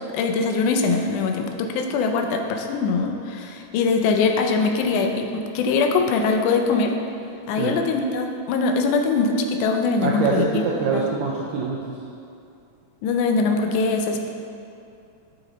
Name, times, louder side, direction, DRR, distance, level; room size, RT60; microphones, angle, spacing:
voice 1, 0.1-6.9 7.5-10.6 10.9-11.1 13.0-14.3, left 4 dB, 85° left, 4 dB, 2.1 m, -22 dB
voice 2, 10.0-11.8, right 4 dB, 90° right, -3 dB, 1.4 m, -24 dB
7.3 x 4.0 x 3.9 m, 2.5 s
omnidirectional pair, 3.5 m